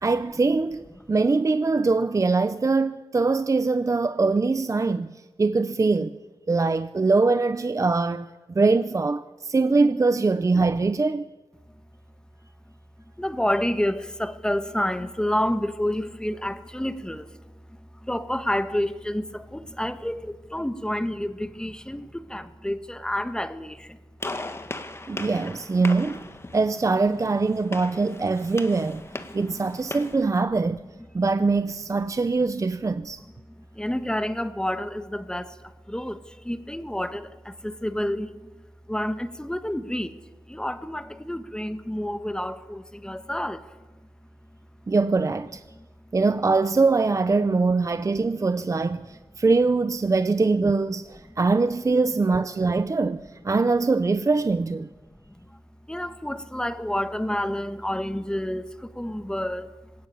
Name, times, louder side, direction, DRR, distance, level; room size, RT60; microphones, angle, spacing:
voice 1, 0.0-6.2 6.5-11.3 25.1-26.3 26.5-29.0 29.3-30.8 31.1-33.2 44.9-45.6 46.1-54.9, right 3 dB, 35° right, 0.6 m, -23 dB
voice 2, 13.2-17.3 17.9-24.0 28.1-28.2 28.5-28.6 29.3-29.6 33.5-38.5 38.9-40.2 40.5-43.7 45.7-45.8 51.3-51.4 55.3-55.6 55.9-59.7, left 1 dB, 10° left, 1.2 m, -29 dB
Gunshot gunfire, 24.2-30.2, left 2 dB, 30° left, 1.6 m, -38 dB
20.0 x 18.0 x 8.6 m
wide cardioid pair, 90°, 9 cm